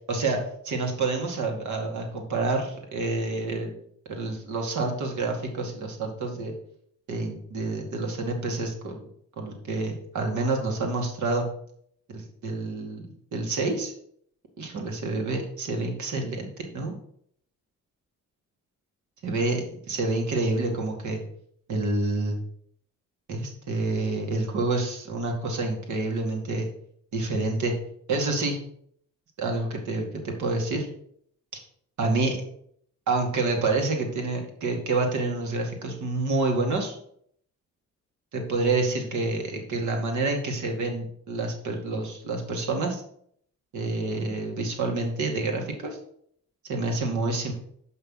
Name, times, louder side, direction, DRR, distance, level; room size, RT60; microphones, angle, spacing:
voice 1, 0.1-3.8 4.1-6.5 7.1-9.0 9.4-11.5 12.1-13.9 14.6-17.0 19.2-21.2 21.7-22.4 23.3-26.7 27.1-27.8 28.1-28.6 29.4-30.9 32.0-32.4 33.1-37.0 38.3-43.0 43.7-46.0 46.6-47.5, right 3 dB, 75° right, 1 dB, 2.3 m, -28 dB
6.9 x 5.8 x 5.6 m, 0.66 s
cardioid pair, 90°, 30 cm